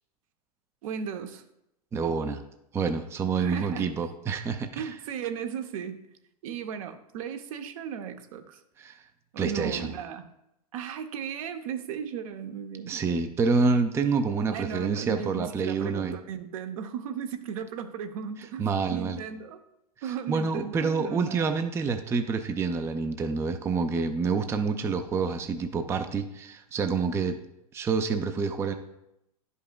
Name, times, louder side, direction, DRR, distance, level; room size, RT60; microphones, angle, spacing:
voice 1, 0.8-1.4 3.4-3.9 4.8-6.0 6.4-8.6 9.3-10.2 10.7-12.9 14.5-18.7 18.9-19.6 20.0-21.5, right 8 dB, 60° right, 8 dB, 0.7 m, -36 dB
voice 2, 1.9-2.4 2.7-4.9 8.8-9.0 9.4-9.9 12.9-16.2 18.6-19.2 20.3-27.4 27.7-28.7, right 4 dB, 15° right, 7 dB, 0.4 m, -27 dB
10.5 x 5.4 x 2.2 m, 0.83 s
hypercardioid pair, 100°, 20 cm